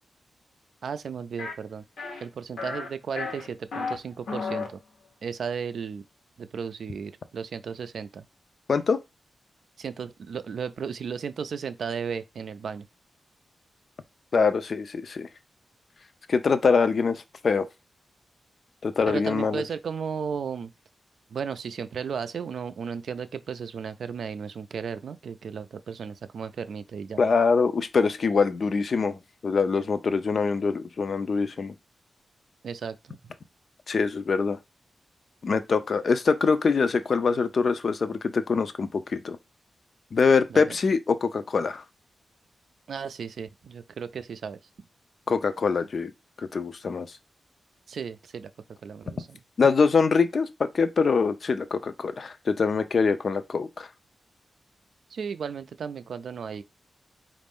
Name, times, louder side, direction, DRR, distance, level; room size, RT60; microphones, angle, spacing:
voice 1, 0.8-1.8 2.2-4.8 5.2-6.0 6.4-8.2 9.8-12.9 19.1-20.7 21.3-27.2 32.6-33.2 40.5-40.8 42.9-44.6 47.9-48.5 48.8-49.4 55.1-56.6, right 6 dB, 70° right, 0.4 m, -34 dB
sound 1, 1.4-1.5 2.0-2.2 2.6-2.9 3.2-3.9 4.3-4.7, left 4 dB, 80° left, 0.9 m, -32 dB
voice 2, 8.7-9.0 14.3-15.3 16.3-17.7 18.8-19.6 27.2-31.7 33.9-34.6 35.4-39.4 40.1-41.8 45.3-46.1 46.5-47.1 49.6-53.9, left 5 dB, 50° left, 0.4 m, -24 dB
4.1 x 2.5 x 3.5 m
wide cardioid pair, 140°, 0 cm